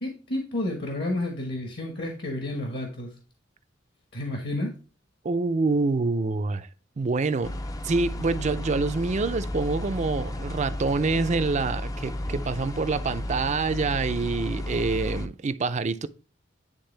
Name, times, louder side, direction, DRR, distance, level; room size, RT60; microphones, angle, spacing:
voice 1, 0.0-3.1 4.1-4.7, left 1 dB, 55° left, 1.4 m, -30 dB
voice 2, 5.2-6.7 7.0-7.5 7.8-16.1, right 3 dB, 40° right, 0.5 m, -26 dB
sound 1, 7.4-15.3, left 1 dB, 20° left, 0.5 m, -33 dB
9.8 x 3.5 x 3.3 m
head